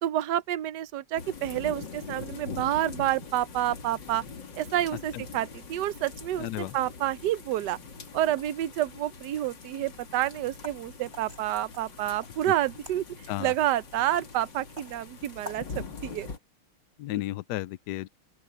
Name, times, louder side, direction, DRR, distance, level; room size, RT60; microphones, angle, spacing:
voice 1, 0.0-4.2 4.6-7.8 8.1-13.0 13.4-15.7 16.0-16.3, right 13 dB, 65° right, 1.1 m, -29 dB
sound 1, 1.2-16.4, left 4 dB, 55° left, 3.0 m, -43 dB
voice 2, 6.4-6.8 13.3-13.5 17.0-18.1, left 15 dB, 85° left, 0.9 m, -33 dB
sound 2, 10.5-15.7, left 1 dB, 30° right, 6.9 m, -49 dB
open air
omnidirectional pair, 2.4 m